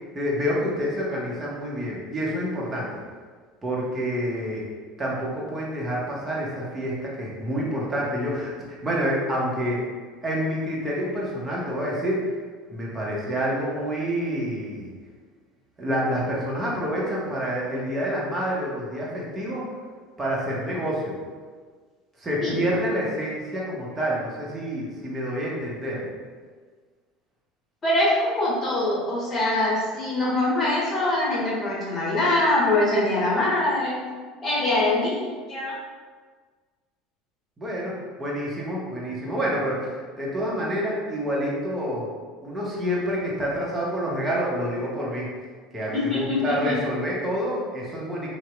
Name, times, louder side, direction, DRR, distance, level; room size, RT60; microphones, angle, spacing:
voice 1, 0.1-3.0 3.6-4.7 5.0-9.8 10.2-12.3 12.7-14.9 15.8-19.6 20.2-21.2 22.2-26.1 37.6-42.1 42.4-45.3 45.7-48.3, equal, 20° right, -5 dB, 0.8 m, -28 dB
voice 2, 27.8-34.0 34.4-35.7 45.9-46.8, left 2 dB, 30° left, -6 dB, 1.0 m, -23 dB
2.7 x 2.0 x 2.4 m, 1.5 s
hypercardioid pair, 75°, 0 cm